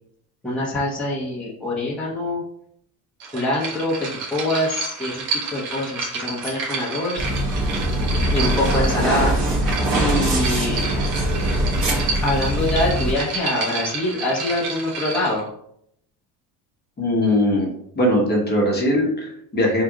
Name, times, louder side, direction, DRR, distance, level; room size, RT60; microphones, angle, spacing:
voice 1, 0.4-2.4 3.3-3.9 4.3-5.2 5.5-7.3 8.3-9.3 9.9-10.9 12.2-15.4, left 1 dB, 5° left, -7 dB, 1.0 m, -24 dB
sound 1, 3.2-15.4, right 4 dB, 75° right, 1.3 m, -30 dB
sound 2, 7.2-13.1, right 1 dB, 60° right, 1.6 m, -22 dB
voice 2, 17.0-17.7 17.9-19.8, left 1 dB, 25° left, -2 dB, 1.1 m, -20 dB
3.8 x 2.5 x 4.6 m, 0.71 s
cardioid pair, 140°, 40 cm